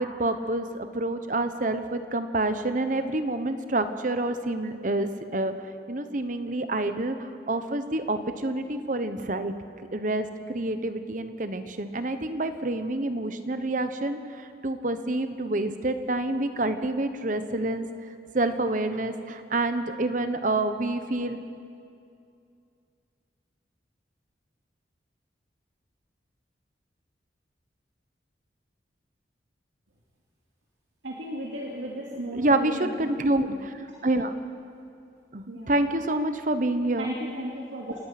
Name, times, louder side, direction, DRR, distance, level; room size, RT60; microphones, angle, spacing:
voice 1, 0.0-5.5 5.9-9.5 9.9-17.9 18.3-21.4 32.3-33.7 34.0-34.3 35.3-37.1, right 2 dB, 45° right, 9 dB, 1.1 m, -27 dB
voice 2, 31.0-33.0 35.5-35.7 37.0-38.0, right 1 dB, 85° right, -3 dB, 2.6 m, -35 dB
27.0 x 18.5 x 6.0 m, 2.4 s
head